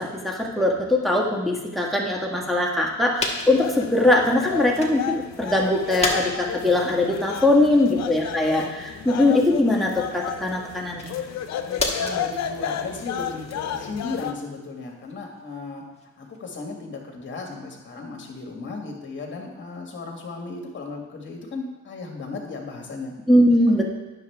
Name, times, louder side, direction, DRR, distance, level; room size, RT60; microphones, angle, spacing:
voice 1, 0.0-11.1 23.3-24.0, left 1 dB, ahead, -1 dB, 1.5 m, -21 dB
sound 1, 3.2-5.1 5.5-16.6, left 3 dB, 20° left, 1.5 m, -35 dB
sound 2, 3.4-14.3, left 8 dB, 65° left, 0.7 m, -32 dB
voice 2, 7.6-8.0 11.6-15.8 16.2-23.1, left 3 dB, 40° left, 1 dB, 2.0 m, -35 dB
9.7 x 6.5 x 3.5 m, 1.2 s
cardioid pair, 90°, 30 cm